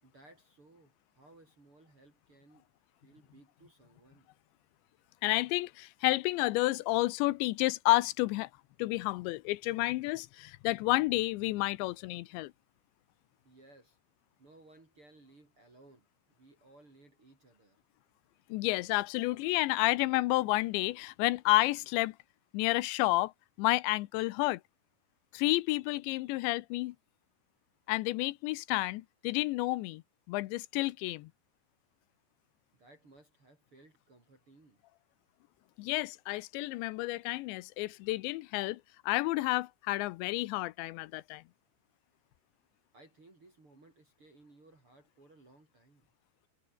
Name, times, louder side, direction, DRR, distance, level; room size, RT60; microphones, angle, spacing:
voice 1, 0.0-2.6 3.0-4.3 13.4-14.0 14.4-17.8 32.7-34.8 42.9-46.1, right 2 dB, 30° right, 5.9 m, -60 dB
voice 2, 5.2-8.5 8.8-12.5 18.5-22.2 22.5-23.3 23.6-24.6 25.3-27.0 27.9-30.0 30.3-31.3 35.8-41.4, left 19 dB, 90° left, 3.0 m, -30 dB
omnidirectional pair, 5.2 m